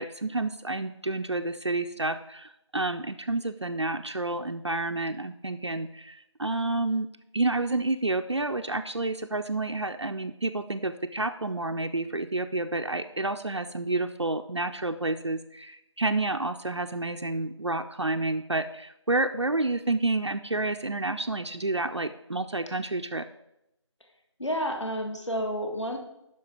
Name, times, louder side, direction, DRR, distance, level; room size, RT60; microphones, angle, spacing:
voice 1, 0.0-7.1 7.3-23.3, right 2 dB, 65° right, 6 dB, 0.5 m, -29 dB
voice 2, 24.4-26.0, equal, 70° left, 2 dB, 1.9 m, -30 dB
9.6 x 6.2 x 4.9 m, 0.84 s
figure-of-eight pair, 175°, 16 cm